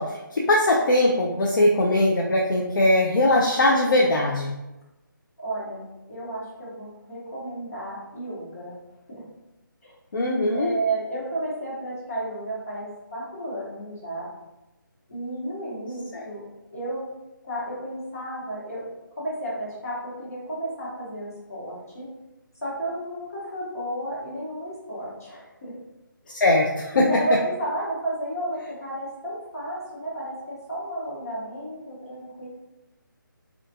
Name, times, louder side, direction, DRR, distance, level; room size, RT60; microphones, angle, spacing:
voice 1, 0.0-4.5 10.1-10.7 16.1-16.2 26.3-27.1, left 1 dB, 65° left, -2 dB, 0.4 m, -21 dB
voice 2, 5.4-8.8 9.1-9.2 9.8-9.9 10.5-14.3 15.1-16.4 16.7-17.1 17.4-18.8 19.2-22.1 22.6-25.7 26.9-32.5, right 1 dB, 45° left, -8 dB, 1.1 m, -32 dB
2.4 x 2.3 x 2.6 m, 0.97 s
hypercardioid pair, 175°, 12 cm